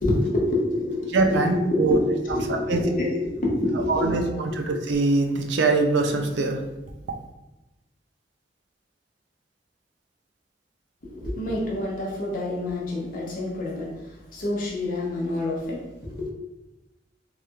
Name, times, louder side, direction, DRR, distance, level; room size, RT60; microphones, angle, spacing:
voice 1, 0.0-4.6 11.1-16.3, left 2 dB, 50° left, -3 dB, 0.8 m, -27 dB
voice 2, 1.1-2.0 2.5-2.8 3.9-6.6, right 3 dB, 80° right, 4 dB, 0.4 m, -23 dB
3.2 x 2.8 x 2.3 m, 1.0 s
head